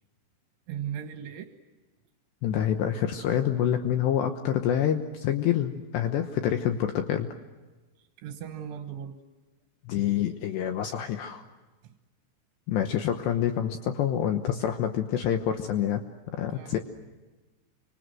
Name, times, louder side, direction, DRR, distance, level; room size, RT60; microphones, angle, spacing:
voice 1, 0.7-1.5 8.2-9.2 16.5-16.8, right 9 dB, 75° right, 6 dB, 3.5 m, -37 dB
voice 2, 2.4-7.3 9.9-11.4 12.7-16.0 16.3-16.8, left 10 dB, 75° left, 6 dB, 3.0 m, -27 dB
30.0 x 25.5 x 7.7 m, 1.2 s
omnidirectional pair, 5.7 m